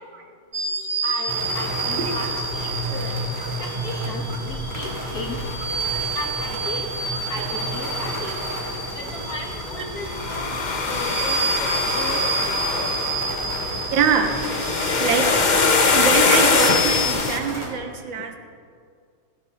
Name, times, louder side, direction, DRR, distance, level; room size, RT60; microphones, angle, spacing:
sound 1, 0.5-17.1, right 3 dB, 45° right, 1.6 m, -30 dB
voice 1, 1.0-3.1 3.6-5.4 5.9-6.9 7.3-8.4 8.9-11.5 11.9-12.5, left 2 dB, 50° left, 0 dB, 2.1 m, -35 dB
sound 2, 1.3-17.7, equal, 10° right, 3.1 m, -31 dB
sound 3, 9.2-17.4, left 4 dB, 90° left, 0.4 m, -22 dB
voice 2, 13.9-14.4 15.0-15.4 15.9-18.4, right 6 dB, 75° right, 5 dB, 2.1 m, -24 dB
18.0 x 16.0 x 4.1 m, 2.1 s
omnidirectional pair, 2.1 m